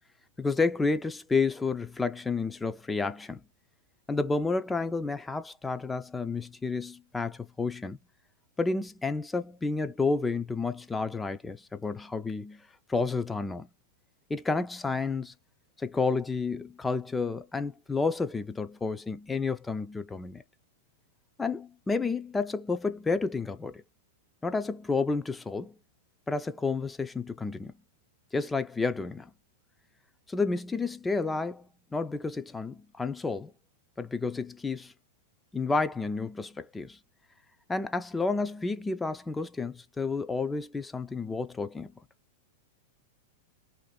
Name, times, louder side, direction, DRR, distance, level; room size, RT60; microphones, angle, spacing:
voice 1, 0.4-3.4 4.1-8.0 8.6-13.7 14.3-15.3 15.8-20.4 21.4-23.8 24.4-25.7 26.3-27.7 28.3-29.3 30.3-31.7 31.9-33.5 34.0-34.9 35.5-37.0 37.7-41.9, left 4 dB, 10° left, 0.4 m, -30 dB
2.6 x 2.5 x 4.1 m
hypercardioid pair, 120°, 0 cm